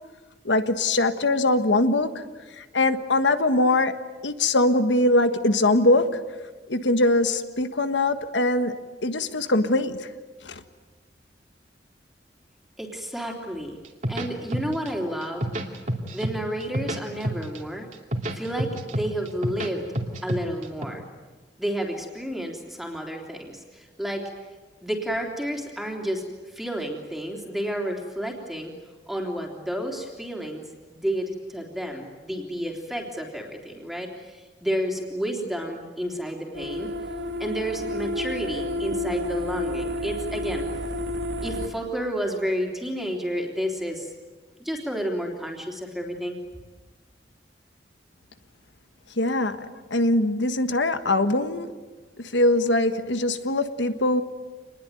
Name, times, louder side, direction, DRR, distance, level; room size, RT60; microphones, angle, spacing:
voice 1, 0.4-2.2 2.6-4.0 4.2-6.2 6.7-8.8 9.0-10.1 10.4-10.6 49.2-51.7 52.2-54.2, left 2 dB, 85° left, 10 dB, 1.6 m, -22 dB
voice 2, 12.8-13.8 14.1-15.5 16.1-17.9 18.3-19.8 20.2-21.0 21.6-24.2 24.8-28.7 29.1-30.6 30.9-36.9 37.4-40.6 41.4-44.1 44.6-46.4, equal, ahead, 1 dB, 3.4 m, -31 dB
sound 1, 13.8-14.9 15.2-16.3 16.6-17.6 17.9-19.7 19.9-20.9, right 1 dB, 45° right, 2.7 m, -28 dB
sound 2, 36.5-41.7, left 1 dB, 70° right, 2.2 m, -30 dB
27.0 x 20.5 x 9.2 m, 1.3 s
head